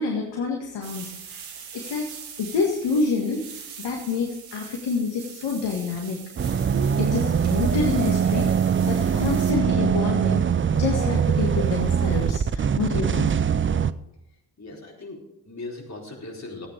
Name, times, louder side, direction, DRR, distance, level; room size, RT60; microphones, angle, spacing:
voice 1, 0.0-1.5 1.7-2.1 2.4-6.3 7.0-8.5 8.8-10.5 10.7-13.3, left 4 dB, 65° left, -1 dB, 2.0 m, -28 dB
sound 1, 0.8-9.5, right 7 dB, 75° right, 1.9 m, -42 dB
sound 2, 6.4-13.9, right 7 dB, 25° right, 0.6 m, -22 dB
voice 2, 14.6-16.7, left 2 dB, 35° left, -1 dB, 4.4 m, -39 dB
14.0 x 9.0 x 5.1 m, 0.82 s
hypercardioid pair, 40°, 47 cm